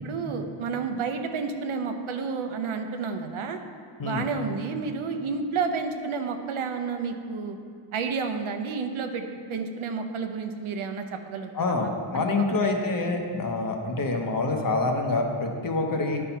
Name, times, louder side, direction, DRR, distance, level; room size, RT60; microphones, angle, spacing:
voice 1, 0.0-3.6 4.0-7.6 7.9-12.6, right 5 dB, 75° right, 6 dB, 0.8 m, -31 dB
voice 2, 11.5-16.2, left 3 dB, 40° left, 3 dB, 0.9 m, -26 dB
10.0 x 4.4 x 5.5 m, 2.2 s
wide cardioid pair, 145°, 49 cm